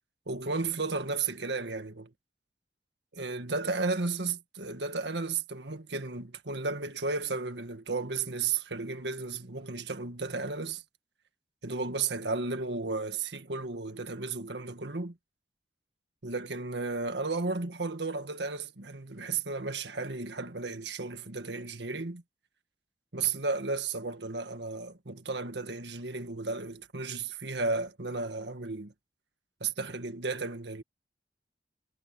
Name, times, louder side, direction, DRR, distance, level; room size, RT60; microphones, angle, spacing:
voice 1, 0.3-2.1 3.1-10.8 11.6-15.2 16.2-22.2 23.1-28.9 29.6-30.8, right 4 dB, 80° right, 1.8 m, -34 dB
head